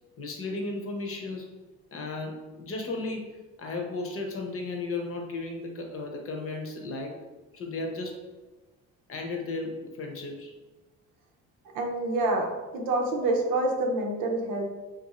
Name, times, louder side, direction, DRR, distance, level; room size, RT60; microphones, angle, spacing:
voice 1, 0.2-1.5 1.9-7.2 7.5-8.2 9.1-10.5, left 3 dB, 45° left, 2 dB, 0.8 m, -35 dB
voice 2, 11.7-12.5 12.7-14.6, right 2 dB, 90° right, 2 dB, 0.6 m, -27 dB
2.6 x 2.4 x 4.0 m, 1.2 s
cardioid pair, 80°, 31 cm